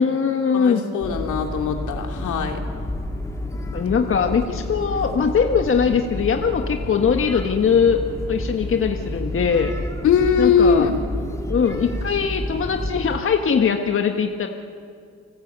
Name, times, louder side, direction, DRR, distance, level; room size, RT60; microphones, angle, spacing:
voice 1, 0.0-0.8 3.7-8.0 8.3-9.7 10.4-10.9 11.5-14.5, left 6 dB, 45° left, 4 dB, 1.6 m, -21 dB
voice 2, 0.5-2.6 10.0-11.0, left 6 dB, 75° left, 3 dB, 3.0 m, -20 dB
sound 1, 1.0-13.2, left 1 dB, 10° left, 2.9 m, -30 dB
30.0 x 19.5 x 8.3 m, 2.3 s
cardioid pair, 90°, 30 cm